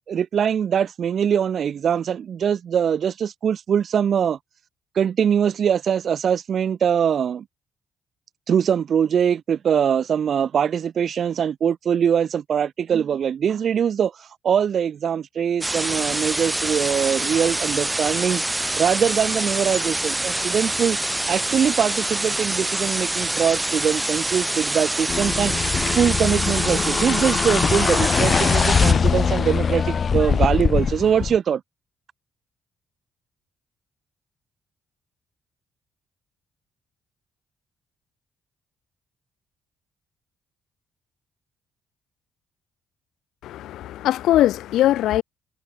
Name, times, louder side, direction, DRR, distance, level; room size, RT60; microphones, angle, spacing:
voice 1, 0.1-4.4 4.9-7.4 8.5-21.0 21.3-31.6, right 8 dB, 55° right, 1.1 m, -22 dB
sound 1, 15.6-28.9, right 1 dB, 10° right, 3.2 m, -25 dB
sound 2, 25.1-31.4, left 6 dB, 45° left, 0.4 m, -22 dB
voice 2, 43.4-45.2, left 13 dB, 85° left, 1.5 m, -20 dB
cardioid pair, 90°, 0 cm